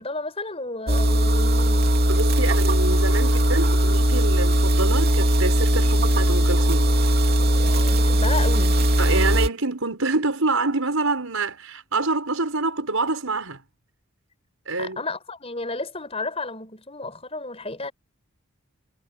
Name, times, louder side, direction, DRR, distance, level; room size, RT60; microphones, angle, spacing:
voice 1, 0.0-1.9 7.6-8.9 14.8-17.9, left 3 dB, 25° left, 5.7 m, -32 dB
sound 1, 0.9-9.5, right 1 dB, 45° right, 3.1 m, -19 dB
voice 2, 2.1-6.9 9.0-13.6 14.7-15.0, right 3 dB, 75° right, 5.3 m, -26 dB
head